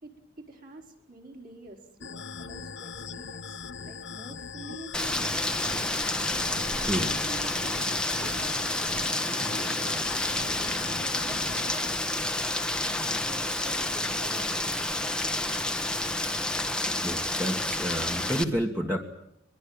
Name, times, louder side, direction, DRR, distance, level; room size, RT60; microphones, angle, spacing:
voice 1, 0.0-5.8 6.7-11.5 12.7-15.4, right 2 dB, 45° right, 1 dB, 4.7 m, -47 dB
sound 1, 2.0-12.0, left 6 dB, 65° left, 1.0 m, -40 dB
Rain, 4.9-18.4, left 1 dB, 5° left, 1.3 m, -29 dB
voice 2, 16.9-19.0, equal, 15° right, 0 dB, 1.8 m, -30 dB
22.5 x 22.0 x 8.8 m, 0.75 s
head